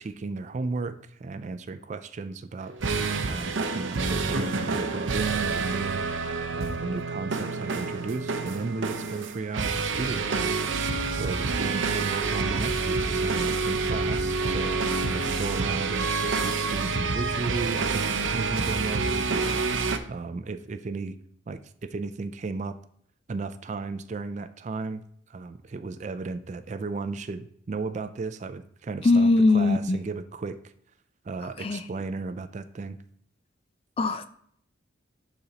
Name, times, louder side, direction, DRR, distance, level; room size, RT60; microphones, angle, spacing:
voice 1, 0.0-2.7 3.3-6.0 6.5-10.6 11.2-14.8 15.1-19.6 20.1-21.2 21.5-22.8 23.3-25.0 25.3-30.7 31.2-33.0, right 3 dB, 40° right, 11 dB, 0.3 m, -34 dB
sound 1, 2.6-20.0, right 4 dB, 80° right, 0.6 m, -28 dB
voice 2, 29.0-30.0 31.6-31.8 34.0-34.3, left 3 dB, 30° left, 10 dB, 0.4 m, -21 dB
11.5 x 4.1 x 2.9 m, 0.66 s
head